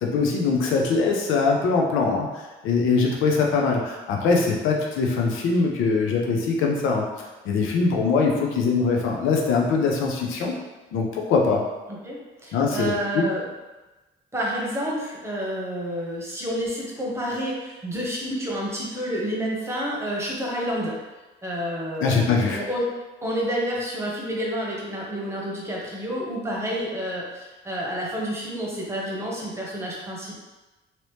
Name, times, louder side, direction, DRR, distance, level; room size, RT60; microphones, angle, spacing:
voice 1, 0.0-7.0 7.4-10.6 10.9-11.6 12.5-13.2 22.0-22.6, left 4 dB, 90° left, 0 dB, 0.6 m, -22 dB
voice 2, 11.9-13.4 14.3-20.9 21.4-22.9 23.2-30.4, equal, 15° right, -4 dB, 1.0 m, -29 dB
3.0 x 2.8 x 3.2 m, 1.1 s
cardioid pair, 90°, 20 cm